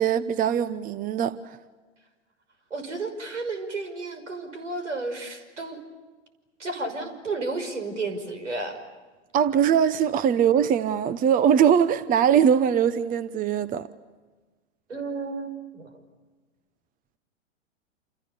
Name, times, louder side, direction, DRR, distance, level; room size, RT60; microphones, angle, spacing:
voice 1, 0.0-1.6 9.3-13.9, right 8 dB, 25° right, 1.0 m, -21 dB
voice 2, 2.7-5.8 6.6-8.8 14.9-15.9, right 3 dB, 85° right, 5.9 m, -32 dB
29.5 x 28.0 x 7.0 m
hypercardioid pair, 110°, 36 cm